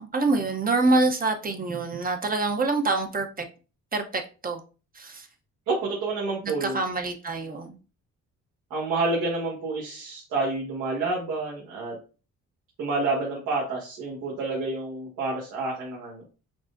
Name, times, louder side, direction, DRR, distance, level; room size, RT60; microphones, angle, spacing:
voice 1, 0.0-3.4 3.9-4.6 5.0-5.3 6.4-7.7, right 3 dB, 30° right, 0.7 m, -26 dB
voice 2, 5.7-6.8 8.7-12.0 12.8-16.2, right 3 dB, 85° right, 1.3 m, -29 dB
5.9 x 2.0 x 2.5 m
cardioid pair, 90°, 30 cm